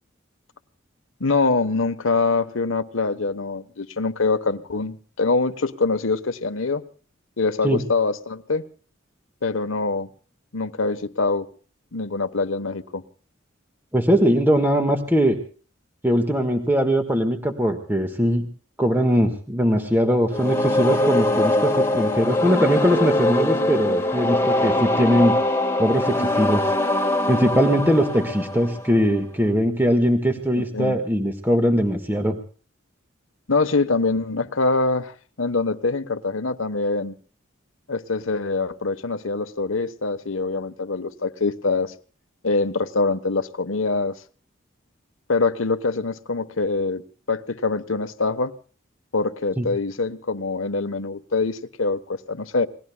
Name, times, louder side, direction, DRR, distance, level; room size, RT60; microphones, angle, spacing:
voice 1, 1.2-6.8 7.4-8.6 9.4-10.1 10.5-11.5 11.9-13.0 30.7-31.0 33.5-37.1 37.9-41.9 42.4-44.2 45.3-48.5 49.1-52.7, left 3 dB, 85° left, 1.2 m, -24 dB
voice 2, 13.9-15.4 16.0-18.5 18.8-25.4 25.8-26.6 27.3-32.4 49.6-49.7, equal, 10° right, 1.5 m, -21 dB
sound 1, 20.3-29.2, left 1 dB, 15° left, 1.7 m, -22 dB
29.0 x 21.0 x 2.3 m
head